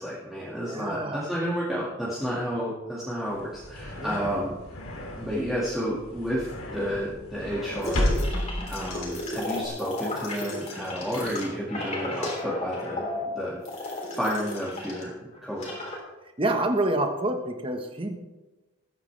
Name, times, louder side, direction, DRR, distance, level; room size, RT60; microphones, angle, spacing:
voice 1, 0.0-4.6 5.2-8.1 8.6-13.0 13.3-15.1 15.4-15.7, equal, ahead, -8 dB, 2.1 m, -31 dB
voice 2, 0.6-1.3 4.0-4.3 16.4-18.2, right 1 dB, 25° right, 4 dB, 1.3 m, -28 dB
sound 1, 3.3-9.7, left 1 dB, 80° left, 2.6 m, -33 dB
sound 2, 7.8-15.1 15.3-16.0, left 2 dB, 30° left, 3.5 m, -34 dB
21.0 x 9.4 x 3.4 m, 1.1 s
head